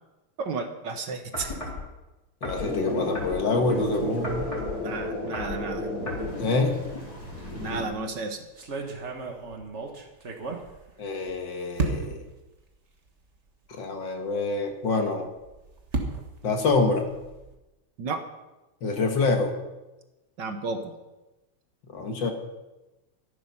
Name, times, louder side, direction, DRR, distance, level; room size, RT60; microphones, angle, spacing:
voice 1, 0.4-1.5 4.8-5.9 7.6-8.4 18.0-18.2 20.4-20.9, right 4 dB, 60° right, 6 dB, 1.6 m, -32 dB
sound 1, 1.3-1.8 2.4-3.8 4.2-4.8 5.2-5.6 6.1-6.3 6.9-7.0, left 2 dB, 15° left, 3.8 m, -35 dB
voice 2, 2.4-4.5 6.4-6.8 11.0-12.2 13.7-15.3 16.4-17.0 18.8-19.5 21.9-22.3, left 3 dB, 60° left, 4 dB, 2.1 m, -26 dB
sound 2, 2.5-7.8, left 1 dB, 45° left, 4.8 m, -32 dB
sound 3, 7.7-8.0 8.6-11.3 11.8-12.3 13.1-13.2 13.5-13.6 15.2-17.5, right 3 dB, 35° right, 1.6 m, -34 dB
14.0 x 11.0 x 5.6 m, 1.0 s
omnidirectional pair, 2.4 m